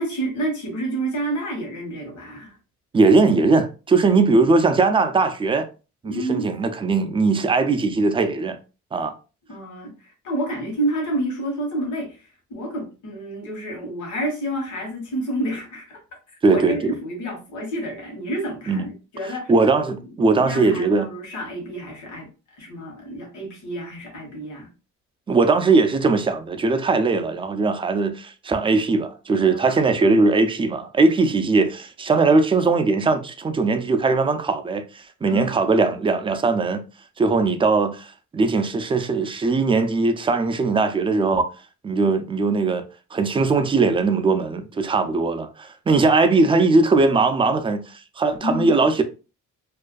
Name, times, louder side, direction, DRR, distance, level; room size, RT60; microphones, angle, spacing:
voice 1, 0.0-2.6 6.0-6.5 9.5-12.2 12.5-16.0 16.4-19.5 20.0-22.3 22.6-24.7 29.4-30.2 35.2-35.6 48.4-48.7, right 1 dB, 75° left, 1.1 m, -29 dB
voice 2, 2.9-5.7 6.0-8.6 8.9-9.1 16.4-16.9 18.7-18.9 19.2-21.1 25.3-36.8 37.2-41.5 41.8-42.8 43.1-49.0, right 3 dB, 20° right, 0.3 m, -20 dB
2.4 x 2.2 x 2.3 m
cardioid pair, 90°, 30 cm